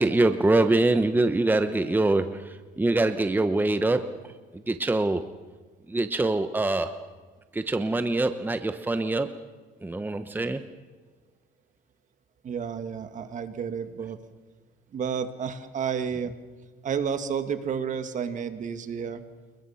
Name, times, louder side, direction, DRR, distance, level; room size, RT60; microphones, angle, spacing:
voice 1, 0.0-5.2 5.9-7.1 7.5-9.4 9.8-10.6, right 2 dB, 10° right, 10 dB, 1.0 m, -24 dB
voice 2, 12.4-14.2 14.9-16.3 16.8-19.2, right 7 dB, 45° right, 9 dB, 1.9 m, -31 dB
28.0 x 22.0 x 5.8 m, 1.4 s
cardioid pair, 110°, 17 cm